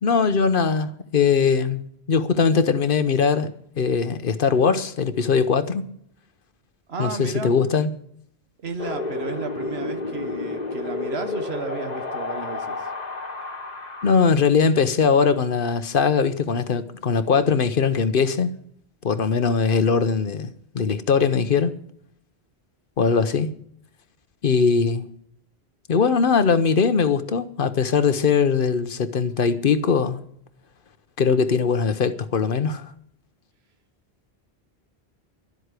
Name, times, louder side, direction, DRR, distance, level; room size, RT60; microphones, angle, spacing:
voice 1, 0.0-3.5 3.8-5.9 7.0-7.9 14.0-18.5 19.0-21.7 23.0-23.5 24.4-25.1 25.9-30.2 31.2-32.8, left 5 dB, 60° left, 1.0 m, -21 dB
voice 2, 6.9-7.6 8.6-12.9, right 4 dB, 75° right, 1.4 m, -33 dB
Wind, 8.8-14.2, left 3 dB, 40° left, 1.5 m, -31 dB
12.0 x 7.9 x 8.2 m
omnidirectional pair, 1.1 m